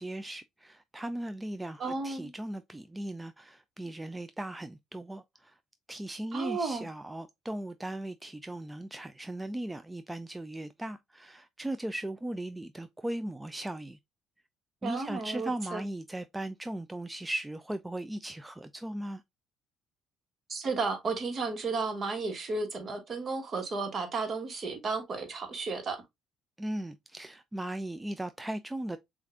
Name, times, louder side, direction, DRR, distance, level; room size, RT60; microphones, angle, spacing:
voice 1, 0.0-5.6 5.9-14.0 14.8-19.2 26.6-29.0, right 1 dB, 10° right, 0.3 m, -38 dB
voice 2, 1.8-2.3 6.3-6.9 14.8-15.8 20.5-26.0, right 4 dB, 45° right, 1.3 m, -33 dB
6.3 x 2.5 x 2.4 m
supercardioid pair, 75°, 0 cm